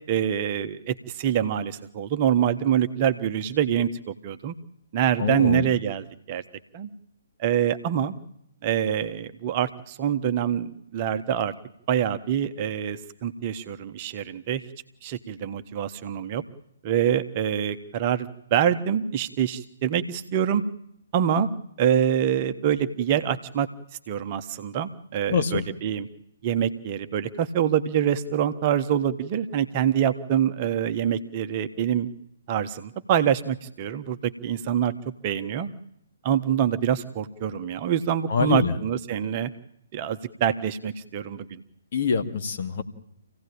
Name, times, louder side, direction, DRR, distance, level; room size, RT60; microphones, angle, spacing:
voice 1, 0.1-4.5 4.9-6.4 6.7-6.9 7.4-8.1 8.6-11.5 11.9-14.6 15.0-16.4 16.8-20.6 21.1-21.5 21.8-23.7 24.1-26.1 26.4-32.1 32.5-34.9 35.2-35.7 36.2-39.5 39.9-41.6, right 9 dB, 30° right, 9 dB, 1.3 m, -25 dB
voice 2, 5.2-5.6 25.3-25.6 38.3-38.7 41.9-42.8, left 5 dB, 45° left, 6 dB, 2.3 m, -24 dB
27.0 x 17.0 x 8.9 m, 0.77 s
figure-of-eight pair, 130°, 0 cm